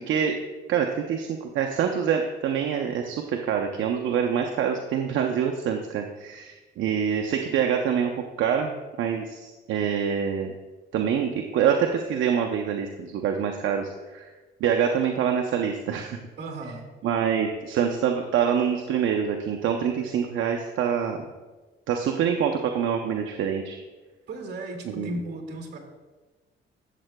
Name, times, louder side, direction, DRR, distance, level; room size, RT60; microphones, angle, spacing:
voice 1, 0.7-8.1 8.4-10.5 10.9-14.3 14.6-16.2 17.0-21.2 21.9-23.8 24.9-25.1, right 8 dB, 75° right, 3 dB, 0.6 m, -25 dB
voice 2, 16.4-16.9 24.3-25.8, right 1 dB, 55° right, 2 dB, 2.1 m, -35 dB
12.5 x 7.4 x 2.2 m, 1.2 s
cardioid pair, 90°, 20 cm